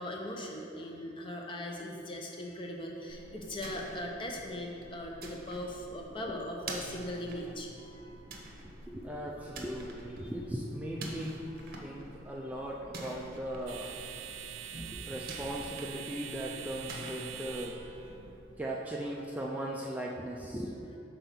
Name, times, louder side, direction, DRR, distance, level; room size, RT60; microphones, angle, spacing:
voice 1, 0.0-8.2 8.5-8.6 10.2-10.3 11.7-11.8 15.0-15.2 17.0-17.9, left 1 dB, 25° left, 0 dB, 0.7 m, -40 dB
sound 1, 3.1-18.4, right 2 dB, 50° right, 0.8 m, -47 dB
sound 2, 8.5-19.8, right 10 dB, 80° right, 0.4 m, -47 dB
voice 2, 8.9-11.4 11.8-14.0 15.1-17.8 18.6-20.8, right 1 dB, 10° right, -3 dB, 0.3 m, -38 dB
5.2 x 4.1 x 5.9 m, 2.8 s
head